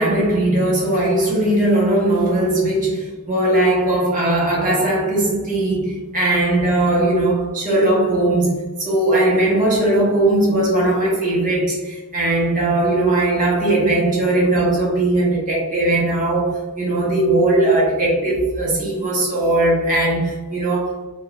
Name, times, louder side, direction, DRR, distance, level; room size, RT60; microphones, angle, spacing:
voice 1, 0.0-21.0, right 1 dB, 35° right, 1.1 m, -19 dB
2.6 x 2.4 x 3.1 m
head